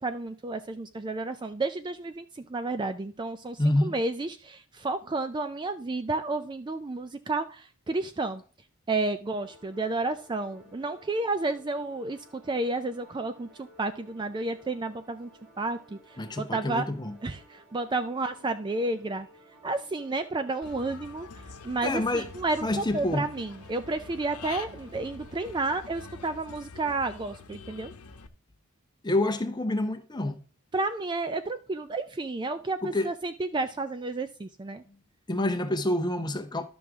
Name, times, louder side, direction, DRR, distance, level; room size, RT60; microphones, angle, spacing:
voice 1, 0.0-8.4 8.9-15.3 15.6-16.9 17.2-19.3 19.6-21.3 21.6-27.9 30.7-34.8, right 3 dB, 20° right, 0.3 m, -31 dB
voice 2, 3.6-4.0 16.2-17.1 21.8-22.3 22.6-23.2 29.0-30.4 32.8-33.1 35.3-36.6, left 1 dB, 20° left, 0.8 m, -27 dB
sound 1, 9.3-26.1, right 1 dB, 75° right, 3.6 m, -56 dB
Human voice / Bird, 20.6-28.3, left 4 dB, 85° left, 0.9 m, -45 dB
12.0 x 6.2 x 3.5 m
head